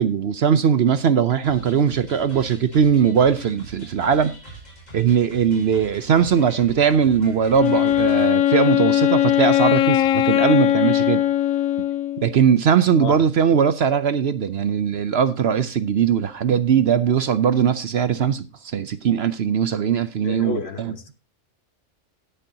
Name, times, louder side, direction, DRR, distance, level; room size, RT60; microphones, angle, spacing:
voice 1, 0.0-4.3 4.9-11.2 12.2-20.9, right 7 dB, 60° right, 0.9 m, -20 dB
sound 1, 1.4-8.3, right 2 dB, 30° left, 5.7 m, -43 dB
Wind instrument woodwind instrument, 7.6-12.4, left 12 dB, 85° left, 1.1 m, -19 dB
voice 2, 20.2-21.1, left 4 dB, 50° left, 1.4 m, -30 dB
18.5 x 6.9 x 2.8 m
omnidirectional pair, 1.4 m